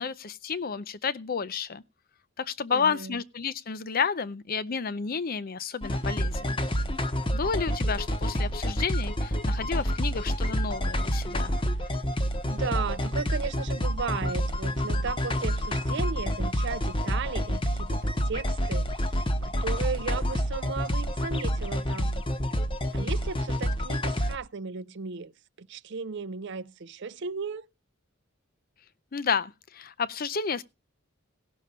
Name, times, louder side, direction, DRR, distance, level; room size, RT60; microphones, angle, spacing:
voice 1, 0.0-1.8 2.4-6.6 7.3-11.5 29.1-30.6, left 6 dB, 45° left, 0.5 m, -31 dB
voice 2, 2.7-3.2 12.4-22.2 22.9-25.3 25.6-27.7, right 5 dB, 55° right, 0.6 m, -35 dB
sound 1, 5.8-24.4, equal, 25° left, 0.9 m, -28 dB
16.5 x 6.3 x 5.5 m
head